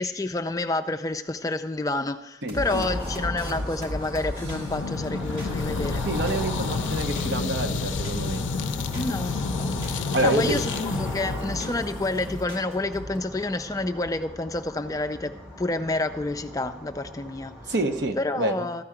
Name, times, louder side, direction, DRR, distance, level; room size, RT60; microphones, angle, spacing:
voice 1, 0.0-6.1 8.9-9.4 9.9-17.5 18.2-18.8, left 2 dB, 20° left, 8 dB, 0.4 m, -29 dB
voice 2, 2.4-2.9 6.0-8.4 10.1-10.6 17.7-18.7, right 1 dB, 70° right, 6 dB, 1.0 m, -27 dB
sound 1, 2.5-6.5 6.8-8.3 8.6-10.1 10.4-11.8 12.1-13.2, equal, 35° right, 3.1 m, -36 dB
sound 2, 2.6-18.1, equal, 15° right, 1.6 m, -37 dB
sound 3, 4.4-12.4, left 5 dB, 85° left, 0.4 m, -30 dB
13.5 x 4.7 x 8.8 m, 0.96 s
head